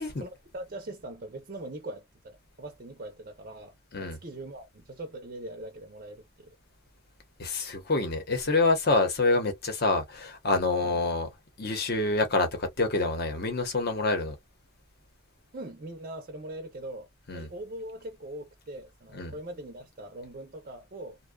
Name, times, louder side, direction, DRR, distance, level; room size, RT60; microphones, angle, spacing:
voice 1, 0.0-6.6 10.8-11.0 15.5-17.1 17.3-21.2, right 1 dB, 40° right, 0.5 m, -41 dB
voice 2, 7.4-11.3 11.6-14.3 17.3-17.5 19.1-19.3, left 3 dB, 45° left, 0.8 m, -27 dB
2.6 x 2.1 x 2.2 m
head